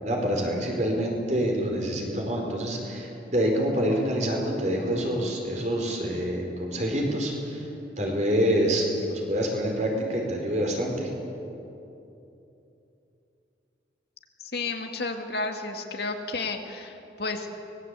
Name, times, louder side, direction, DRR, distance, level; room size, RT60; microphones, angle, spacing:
voice 1, 0.0-7.7 8.0-11.1, equal, 40° right, 1 dB, 4.6 m, -26 dB
voice 2, 14.4-17.5, left 3 dB, 65° left, 4 dB, 2.1 m, -32 dB
24.5 x 20.5 x 8.3 m, 2.9 s
head